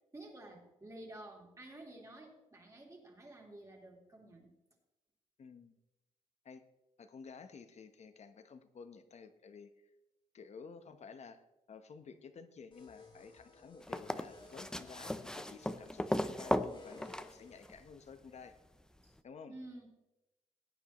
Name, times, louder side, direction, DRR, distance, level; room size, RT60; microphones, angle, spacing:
voice 1, 0.1-4.5 19.0-19.1 19.5-19.9, right 1 dB, 20° right, -1 dB, 3.2 m, -51 dB
voice 2, 5.4-5.8 6.4-6.6 7.0-9.7 10.3-18.6 19.2-19.5, left 5 dB, 50° left, 9 dB, 1.1 m, -52 dB
sound 1, 12.7-17.7, left 3 dB, 35° left, 2.5 m, -58 dB
sound 2, 13.8-17.9 19.2-19.3, left 1 dB, 5° left, 0.6 m, -37 dB
18.0 x 9.4 x 3.1 m, 0.95 s
cardioid pair, 105°, 14 cm